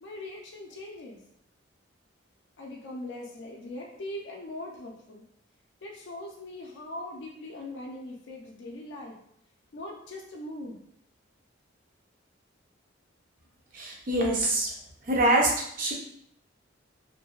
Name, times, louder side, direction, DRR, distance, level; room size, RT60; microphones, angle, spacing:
voice 1, 0.0-1.2 2.6-5.2 5.8-9.1 9.7-10.8, left 1 dB, 60° left, -1 dB, 0.4 m, -40 dB
voice 2, 13.7-14.7 15.0-15.5 15.8-15.9, right 1 dB, 45° right, -2 dB, 0.6 m, -24 dB
2.5 x 2.1 x 2.3 m, 0.69 s
head